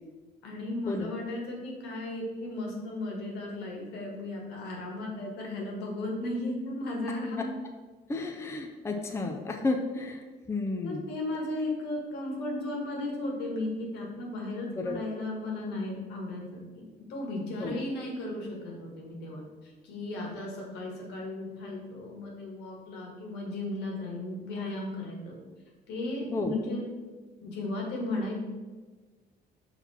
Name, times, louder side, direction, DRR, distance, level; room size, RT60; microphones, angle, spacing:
voice 1, 0.4-7.4 10.8-16.8 17.1-25.3 25.9-26.8 27.4-28.4, left 2 dB, 80° left, -1 dB, 1.7 m, -35 dB
voice 2, 8.1-11.0 14.8-15.2 17.6-17.7 26.3-26.5, left 3 dB, 15° left, 3 dB, 0.6 m, -32 dB
5.7 x 4.0 x 4.3 m, 1.3 s
cardioid pair, 110°, 17 cm